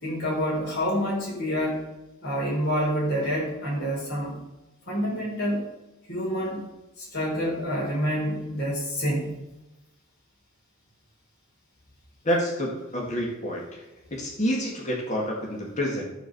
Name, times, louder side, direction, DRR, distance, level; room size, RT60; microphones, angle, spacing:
voice 1, 0.0-1.9 2.2-4.4 4.9-5.6 6.1-6.6 7.0-9.4, equal, 50° left, -5 dB, 4.4 m, -27 dB
voice 2, 12.2-13.8 14.1-16.0, equal, 35° left, -2 dB, 2.1 m, -28 dB
13.0 x 4.7 x 6.9 m, 1.0 s
head